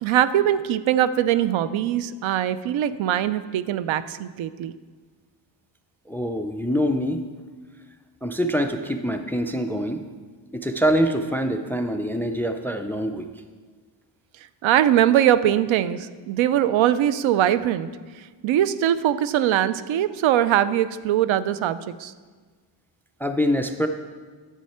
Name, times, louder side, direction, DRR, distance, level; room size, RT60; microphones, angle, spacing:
voice 1, 0.0-4.7 14.6-17.9 18.2-22.1, right 11 dB, 75° right, 14 dB, 0.5 m, -21 dB
voice 2, 6.1-7.2 8.2-10.0 10.5-13.3 23.2-23.9, equal, 5° left, 7 dB, 0.3 m, -24 dB
10.5 x 7.4 x 4.3 m, 1.5 s
cardioid pair, 130°, 47 cm